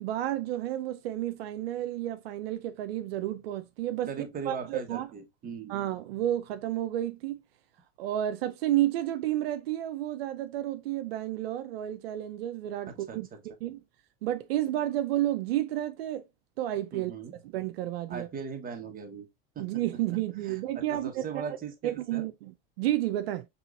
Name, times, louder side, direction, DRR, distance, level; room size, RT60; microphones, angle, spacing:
voice 1, 0.0-4.1 4.4-5.1 5.7-7.4 8.0-13.3 13.6-13.8 14.2-16.2 16.6-17.1 17.4-18.3 19.6-21.4 21.8-23.5, right 13 dB, 85° right, 0.6 m, -31 dB
voice 2, 4.1-5.7 12.8-13.4 16.9-17.4 18.1-19.3 19.5-19.7 20.5-22.3, right 6 dB, 30° right, 1.2 m, -39 dB
4.9 x 3.0 x 2.5 m
supercardioid pair, 105°, 29 cm